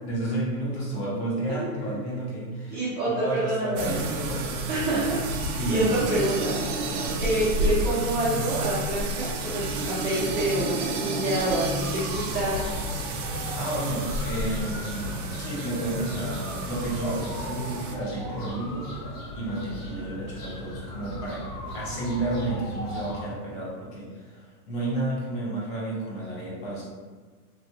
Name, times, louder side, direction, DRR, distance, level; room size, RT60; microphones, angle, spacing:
voice 1, 0.0-4.5 4.9-5.1 5.6-6.1 13.6-18.9 19.3-21.4 21.7-26.8, right 1 dB, 45° left, -6 dB, 1.2 m, -31 dB
voice 2, 1.5-2.0 2.7-4.0 4.7-5.1 5.7-12.7, right 1 dB, 20° right, -9 dB, 0.9 m, -28 dB
sound 1, 3.8-17.9, right 2 dB, 55° right, 0.6 m, -30 dB
sound 2, 11.8-23.2, equal, 85° left, 1.1 m, -38 dB
3.1 x 2.5 x 2.8 m, 1.4 s
supercardioid pair, 135°, 44 cm